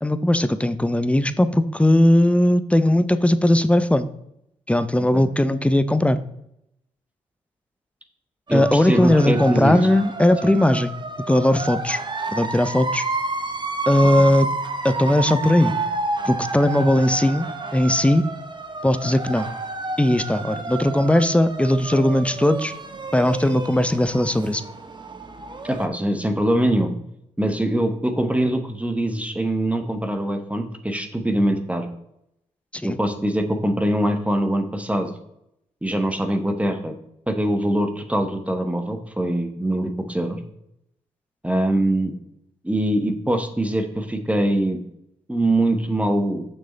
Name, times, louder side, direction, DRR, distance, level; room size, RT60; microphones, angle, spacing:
voice 1, 0.0-4.1 4.7-6.2 8.5-10.9 11.3-12.0 12.3-13.1 13.9-14.5 14.8-15.7 16.2-18.2 18.8-19.5 20.0-22.7 23.1-24.6 32.7-33.0, left 1 dB, 10° left, 13 dB, 0.7 m, -18 dB
voice 2, 8.5-9.7 10.4-10.5 14.2-14.3 25.6-26.9 27.4-31.9 32.8-35.1 35.8-36.9 37.3-40.4 41.4-42.1 42.6-44.8 45.3-46.5, right 1 dB, 10° right, 7 dB, 1.2 m, -23 dB
sound 1, 8.5-25.9, right 3 dB, 35° right, 1.1 m, -30 dB
6.6 x 6.2 x 4.0 m, 0.77 s
supercardioid pair, 55°, 14 cm